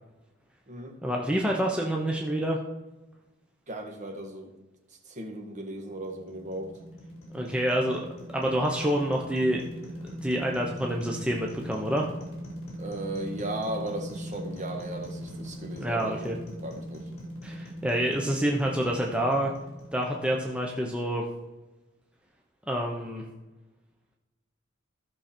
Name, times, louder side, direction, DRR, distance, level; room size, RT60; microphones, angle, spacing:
voice 1, 1.0-2.6 7.3-8.1 8.3-12.1 15.8-16.3 17.4-19.5 19.9-21.2 22.7-23.2, right 1 dB, 5° right, -1 dB, 0.9 m, -27 dB
voice 2, 3.7-4.5 5.1-6.7 12.8-16.3 16.6-17.1, right 1 dB, 40° right, 3 dB, 1.7 m, -36 dB
sound 1, 5.8-21.0, equal, 35° left, 4.0 m, -41 dB
14.0 x 6.4 x 4.4 m, 1.1 s
head